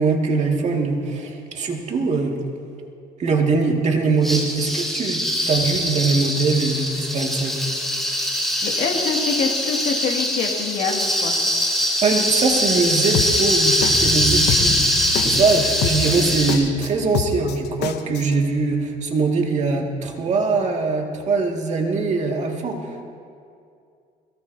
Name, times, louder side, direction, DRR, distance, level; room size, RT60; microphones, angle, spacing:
voice 1, 0.0-2.4 3.2-5.2 5.5-7.6 12.0-14.7 15.3-22.8, right 4 dB, 45° right, 1 dB, 2.1 m, -22 dB
sound 1, 4.2-16.6, equal, ahead, 3.5 m, -22 dB
voice 2, 8.6-11.4, left 5 dB, 65° left, 1 dB, 2.2 m, -25 dB
sound 2, 12.6-18.3, left 8 dB, 85° left, 0.8 m, -27 dB
sound 3, 13.8-18.3, equal, 75° right, 3.5 m, -32 dB
22.5 x 17.5 x 2.8 m, 2.4 s
cardioid pair, 110°, 17 cm